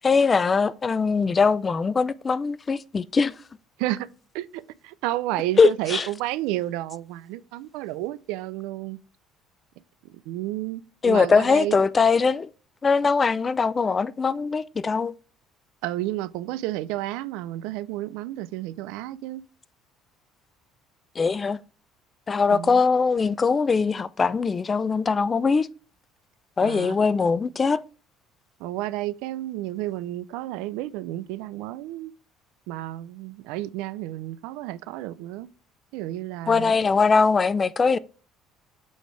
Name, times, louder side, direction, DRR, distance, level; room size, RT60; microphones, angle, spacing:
voice 1, 0.0-3.3 5.6-6.0 11.0-12.5 12.8-15.1 21.2-21.6 22.3-25.7 26.6-27.8 36.5-38.0, left 5 dB, 25° left, 0.3 m, -21 dB
voice 2, 4.3-9.0 10.3-11.8 15.8-19.4 22.5-22.8 26.6-27.0 28.6-32.1 32.7-35.5 35.9-36.7, right 15 dB, 85° right, 0.4 m, -31 dB
8.2 x 4.2 x 3.3 m
cardioid pair, 120°, 0 cm